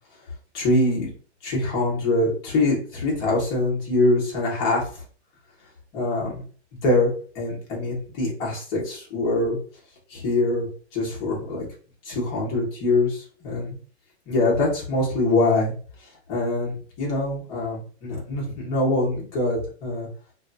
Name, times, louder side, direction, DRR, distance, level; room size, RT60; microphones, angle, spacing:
voice 1, 0.5-1.1 1.4-5.0 5.9-6.4 6.8-9.6 10.1-11.7 12.0-13.8 14.3-15.7 16.3-20.1, left 2 dB, 10° left, -3 dB, 0.5 m, -24 dB
2.2 x 2.1 x 3.7 m, 0.42 s
hypercardioid pair, 165°, 35 cm